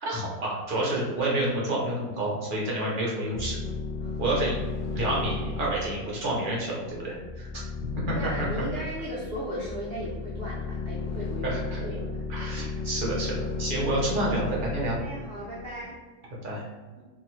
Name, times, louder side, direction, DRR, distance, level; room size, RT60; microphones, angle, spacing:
voice 1, 0.0-3.6 4.2-4.6 4.9-7.5 8.1-8.2 11.4-11.8 12.3-15.0 16.4-16.6, right 1 dB, 50° right, -5 dB, 0.6 m, -29 dB
sound 1, 3.3-15.8, left 4 dB, 80° left, 0.5 m, -34 dB
voice 2, 8.1-12.2 15.0-16.0 17.0-17.1, equal, 85° right, -4 dB, 0.5 m, -37 dB
2.7 x 2.6 x 3.0 m, 1.3 s
omnidirectional pair, 1.7 m